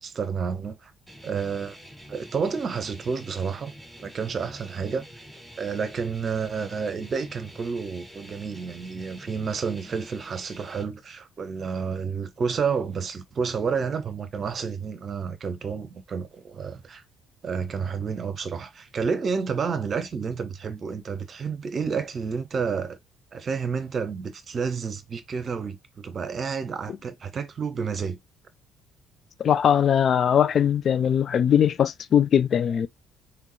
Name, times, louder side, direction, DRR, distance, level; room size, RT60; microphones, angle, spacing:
voice 1, 0.0-0.9 1.2-1.8 2.1-5.0 5.6-17.0 17.4-23.0 23.3-28.2, right 5 dB, 45° right, 0.7 m, -30 dB
sound 1, 1.1-10.8, equal, 10° right, 2.1 m, -46 dB
voice 2, 29.4-32.9, left 9 dB, 50° left, 0.3 m, -20 dB
3.7 x 3.2 x 3.1 m
figure-of-eight pair, 50°, 0 cm